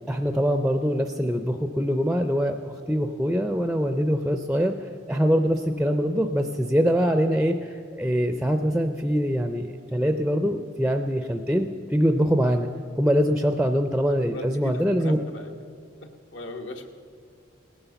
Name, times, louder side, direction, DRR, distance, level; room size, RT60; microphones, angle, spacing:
voice 1, 0.1-12.7 13.0-15.2, equal, 5° right, 7 dB, 0.4 m, -24 dB
voice 2, 14.3-15.5 16.0-16.9, left 1 dB, 70° left, 4 dB, 1.1 m, -38 dB
17.5 x 9.9 x 6.9 m, 2.2 s
head